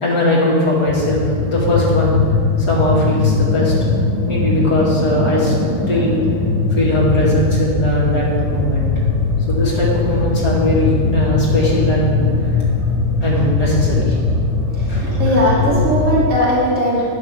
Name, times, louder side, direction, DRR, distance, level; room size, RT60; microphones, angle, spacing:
voice 1, 0.0-2.2 2.6-3.7 4.2-5.5 5.9-6.2 6.7-8.9 9.5-12.3 12.5-12.6 13.2-14.2 14.9-15.2, left 1 dB, 75° left, -5 dB, 2.8 m, -19 dB
sound 1, 0.9-16.3, left 3 dB, 10° right, 1.4 m, -19 dB
voice 2, 14.7-17.0, equal, 50° right, -6 dB, 2.3 m, -18 dB
10.5 x 6.3 x 6.1 m, 2.4 s
omnidirectional pair, 1.8 m